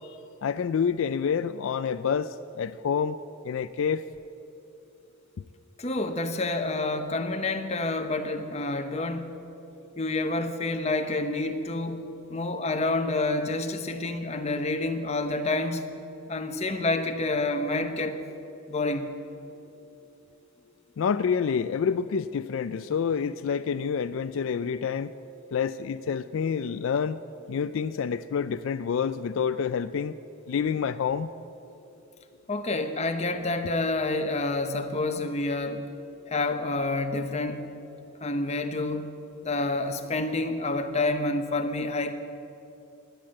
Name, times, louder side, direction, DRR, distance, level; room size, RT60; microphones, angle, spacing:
voice 1, 0.4-2.3 2.6-3.1 3.5-4.0 21.0-25.1 25.5-27.2 27.5-30.1 30.5-31.3, left 6 dB, 70° left, 13 dB, 0.3 m, -27 dB
voice 2, 5.8-9.4 10.0-12.0 12.3-15.8 16.3-18.2 18.7-19.1 32.5-35.8 36.3-37.7 38.2-39.1 39.4-42.1, left 2 dB, 30° left, 6 dB, 0.9 m, -28 dB
16.0 x 10.5 x 7.8 m, 2.9 s
head